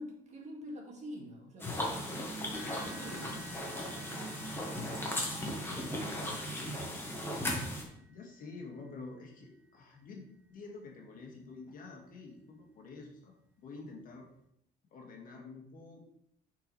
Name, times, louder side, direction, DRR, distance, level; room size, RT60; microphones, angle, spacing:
voice 1, 0.0-1.8 2.7-3.4 5.7-6.5, equal, 45° right, 0 dB, 2.0 m, -46 dB
sound 1, 1.6-7.8, left 1 dB, 15° left, 1.5 m, -37 dB
sound 2, 2.5-10.6 11.2-11.4 11.9-12.0 13.4-13.5, equal, 10° right, 2.3 m, -54 dB
voice 2, 7.9-14.3 14.9-16.0, left 3 dB, 55° left, 0 dB, 1.8 m, -49 dB
8.2 x 4.6 x 3.2 m, 0.72 s
cardioid pair, 110°, 17 cm